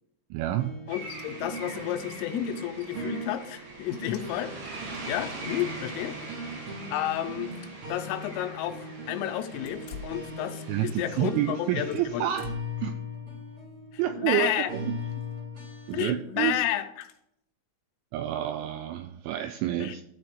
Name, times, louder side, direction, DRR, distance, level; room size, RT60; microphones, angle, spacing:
voice 1, 0.3-0.7 10.7-12.5 12.8-13.0 14.0-14.9 15.9-16.6 18.1-20.0, right 12 dB, 85° right, 8 dB, 2.7 m, -29 dB
sound 1, 0.6-16.5, equal, 40° right, 2.1 m, -40 dB
voice 2, 0.9-6.2 6.9-7.5 7.9-12.3 14.2-14.7 15.9-17.1 19.8-19.9, left 13 dB, 90° left, 8 dB, 3.3 m, -31 dB
sound 2, 0.9-12.2, right 2 dB, 65° right, 4.9 m, -43 dB
sound 3, 1.1-1.2 1.6-2.0 2.3-2.4 2.7-5.9 6.4-7.8 8.0-8.1 9.6-11.0 11.3-12.8 13.3-13.6 15.0-15.3 15.8-16.2 17.0-17.2, left 5 dB, 70° left, 3.0 m, -51 dB
13.0 x 4.4 x 6.5 m, 0.77 s
omnidirectional pair, 5.8 m